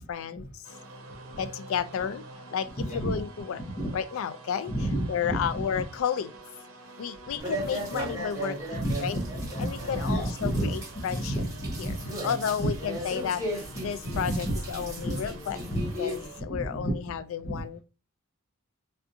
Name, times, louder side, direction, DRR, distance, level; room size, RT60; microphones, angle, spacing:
voice 1, 0.1-0.6 1.4-2.2 2.5-3.6 3.9-4.7 5.1-6.3 7.0-9.2 9.6-11.4 11.8-11.9 12.2-15.6 16.0-17.8, left 7 dB, 75° left, 0.3 m, -32 dB
sound 1, 0.6-16.4, right 2 dB, 85° right, 0.7 m, -46 dB
voice 2, 2.8-3.2 3.8-3.9 4.7-5.8 7.6-7.7 8.7-10.8 11.1-12.1 12.6-12.7 13.8-14.6 15.0-15.3 15.5-15.9 16.5-17.6, right 1 dB, 35° left, 0.8 m, -31 dB
sound 2, 7.4-16.3, equal, 15° right, 1.0 m, -37 dB
3.4 x 2.5 x 2.7 m
head